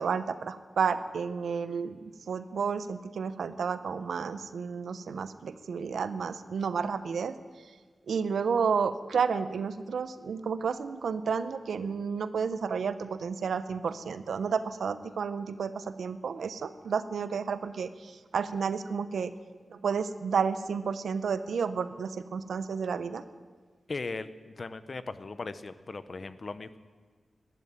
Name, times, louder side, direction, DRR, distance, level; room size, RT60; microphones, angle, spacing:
voice 1, 0.0-7.7 8.1-19.3 19.7-23.2, right 6 dB, 85° right, 12 dB, 0.8 m, -31 dB
voice 2, 23.9-26.8, left 3 dB, 50° left, 13 dB, 0.9 m, -38 dB
13.0 x 12.5 x 8.9 m, 1.5 s
cardioid pair, 60°, 0 cm